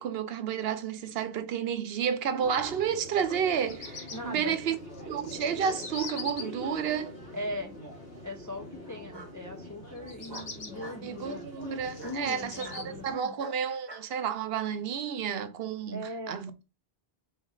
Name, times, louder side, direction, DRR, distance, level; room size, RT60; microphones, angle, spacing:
voice 1, 0.0-4.8 5.1-7.1 11.0-16.5, right 8 dB, 70° right, 0.8 m, -31 dB
sound 1, 2.4-13.1, left 1 dB, 85° left, 2.6 m, -44 dB
Bird vocalization bird call bird song, 3.3-4.2 4.9-6.4 10.0-10.7 11.4-12.8, left 4 dB, 65° left, 1.2 m, -41 dB
voice 2, 4.1-4.6 7.3-7.7 8.2-11.5 12.0-13.3 15.9-16.4, left 1 dB, 25° left, 0.4 m, -39 dB
Bark, 9.1-9.3 10.3-11.0 12.0-12.2 12.6-12.8 13.4-14.1, right 2 dB, 25° right, 0.7 m, -45 dB
4.1 x 3.1 x 3.8 m
omnidirectional pair, 1.1 m